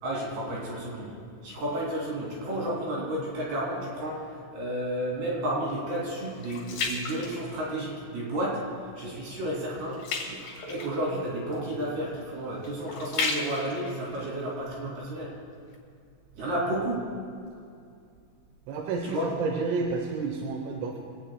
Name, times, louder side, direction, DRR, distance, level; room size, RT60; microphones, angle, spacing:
voice 1, 0.0-1.1 1.4-8.6 9.0-10.0 10.3-15.3 16.4-17.1 19.0-19.3, right 1 dB, 55° right, -5 dB, 4.8 m, -32 dB
sound 1, 4.9-8.1 8.6-8.9 9.2-15.2 15.7-15.8, left 4 dB, 50° left, 3.4 m, -36 dB
voice 2, 18.7-21.0, right 4 dB, 85° right, 2 dB, 3.7 m, -30 dB
24.5 x 18.0 x 2.3 m, 2.4 s
omnidirectional pair, 5.8 m